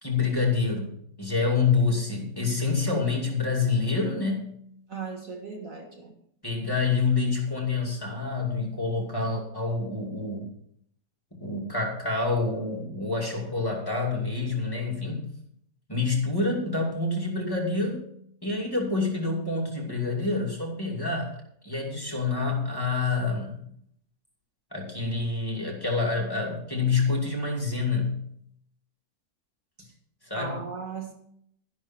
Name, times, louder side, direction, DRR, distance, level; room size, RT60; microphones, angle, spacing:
voice 1, 0.0-4.6 6.4-10.5 11.3-15.3 15.9-18.1 18.4-21.4 21.6-23.7 24.7-28.2 30.2-30.6, left 4 dB, 10° left, -1 dB, 2.5 m, -27 dB
voice 2, 4.9-6.1 29.8-29.9 30.3-31.1, right 4 dB, 50° right, 2 dB, 2.1 m, -37 dB
12.5 x 11.0 x 4.4 m, 0.68 s
omnidirectional pair, 1.9 m